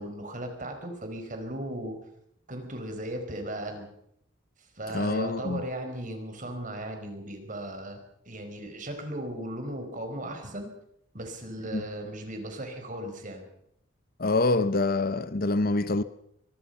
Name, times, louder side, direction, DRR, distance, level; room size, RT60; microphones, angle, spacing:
voice 1, 0.0-2.0 2.5-3.9 4.7-10.7 11.1-13.5, right 1 dB, 40° right, 4.7 m, -37 dB
voice 2, 4.9-5.6 11.7-11.8 14.2-16.0, left 2 dB, 45° left, 0.9 m, -26 dB
24.0 x 21.5 x 5.6 m
head